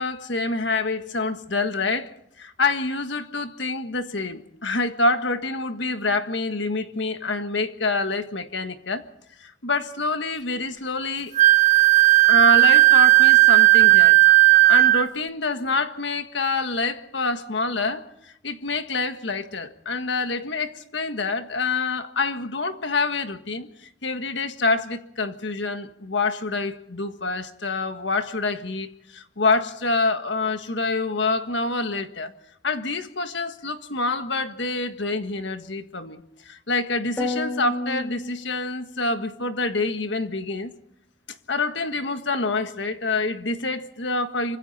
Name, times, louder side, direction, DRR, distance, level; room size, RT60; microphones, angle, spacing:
voice 1, 0.0-2.1 2.4-9.0 9.4-11.3 12.3-14.2 14.7-32.3 32.6-40.7 41.5-44.6, left 3 dB, 60° left, 1.6 m, -26 dB
Wind instrument woodwind instrument, 11.4-15.1, right 20 dB, 35° right, 0.8 m, -14 dB
sound 1, 37.2-39.1, left 2 dB, 10° left, 3.4 m, -30 dB
26.5 x 25.0 x 4.3 m
head